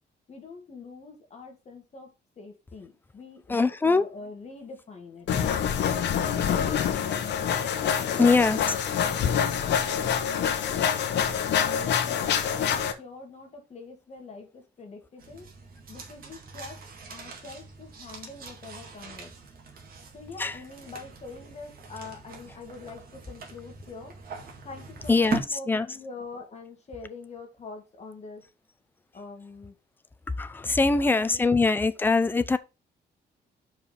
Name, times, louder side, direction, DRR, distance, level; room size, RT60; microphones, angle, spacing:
voice 1, 0.3-5.3 6.3-7.4 7.9-12.3 12.7-15.5 15.9-16.8 17.1-19.3 20.1-24.1 24.6-28.4 29.1-29.8 30.8-31.5, left 4 dB, 40° left, 1.9 m, -44 dB
voice 2, 3.5-4.1 8.2-8.6 20.4-20.6 25.1-25.9 30.4-32.6, left 3 dB, 10° left, 0.5 m, -22 dB
sound 1, 5.3-12.9, left 8 dB, 75° left, 1.0 m, -26 dB
sound 2, 15.2-25.4, right 4 dB, 55° right, 1.9 m, -41 dB
5.1 x 4.7 x 5.7 m
cardioid pair, 145°, 18 cm